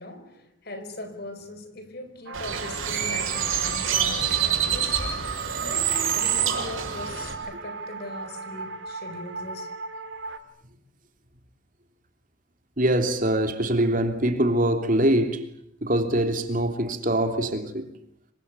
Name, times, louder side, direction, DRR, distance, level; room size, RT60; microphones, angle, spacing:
voice 1, 0.0-5.3 5.6-10.1, left 2 dB, 50° left, 4.8 m, -40 dB
sound 1, 2.3-10.4, right 4 dB, 70° right, 2.7 m, -37 dB
Bird, 2.3-7.3, right 8 dB, 85° right, 6.6 m, -26 dB
voice 2, 12.8-15.5 15.8-17.8, right 1 dB, 40° right, 3.1 m, -23 dB
26.5 x 25.0 x 8.3 m
head